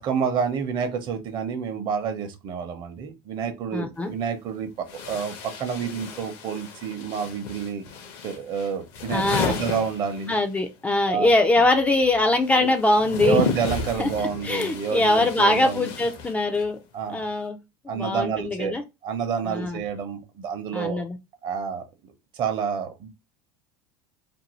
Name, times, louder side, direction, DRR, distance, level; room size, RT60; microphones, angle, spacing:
voice 1, 0.0-7.9 8.2-10.3 11.1-11.3 12.6-12.7 13.1-15.9 16.9-17.3 17.9-18.7 19.0-21.0 21.4-23.1, right 7 dB, 45° right, 0.7 m, -29 dB
voice 2, 3.7-4.1 9.1-9.5 10.3-13.4 14.0-14.1 14.4-16.8 17.1-18.8 19.5-19.8 20.7-21.2, left 2 dB, 15° left, 0.3 m, -22 dB
sound 1, 3.9-4.0 4.9-10.7 10.9-16.8, left 5 dB, 55° left, 0.7 m, -33 dB
2.5 x 2.3 x 3.0 m
supercardioid pair, 120°, 11 cm